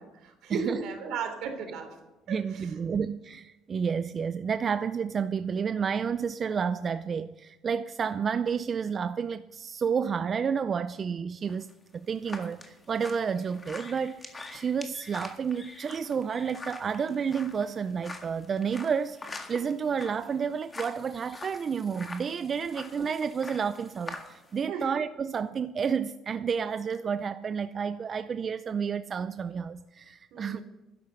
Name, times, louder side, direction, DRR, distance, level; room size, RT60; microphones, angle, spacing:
voice 1, 0.0-2.0 2.3-2.7 24.7-24.9 30.3-30.6, right 5 dB, 70° right, 5 dB, 3.3 m, -35 dB
voice 2, 2.3-30.6, right 6 dB, 35° right, 12 dB, 0.4 m, -30 dB
sound 1, 11.4-24.6, left 3 dB, 20° left, 1.8 m, -45 dB
12.0 x 11.0 x 6.5 m, 1.1 s
cardioid pair, 125°, 0 cm